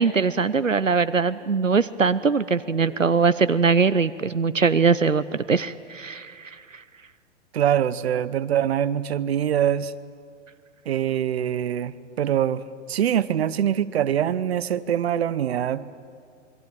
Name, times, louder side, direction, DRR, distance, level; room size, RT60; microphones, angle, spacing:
voice 1, 0.0-6.8, right 5 dB, 90° right, 15 dB, 0.7 m, -22 dB
voice 2, 7.5-9.9 10.9-12.6 12.9-15.9, right 10 dB, 55° right, 16 dB, 1.0 m, -24 dB
27.5 x 22.5 x 9.2 m, 2.2 s
figure-of-eight pair, 110°, 37 cm